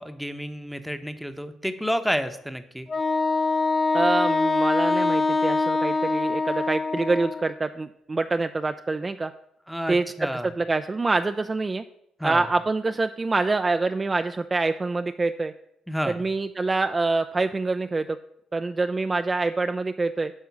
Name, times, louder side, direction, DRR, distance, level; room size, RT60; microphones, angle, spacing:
voice 1, 0.0-2.9 9.7-10.5 12.2-12.4 15.9-16.2, equal, ahead, 8 dB, 0.8 m, -30 dB
Wind instrument woodwind instrument, 2.9-7.5, left 3 dB, 35° left, 0.5 m, -24 dB
voice 2, 3.9-9.3 9.9-11.8 12.2-15.5 16.1-18.2 18.5-20.3, right 3 dB, 25° right, 8 dB, 0.4 m, -26 dB
10.5 x 3.7 x 7.0 m, 0.79 s
cardioid pair, 90°, 0 cm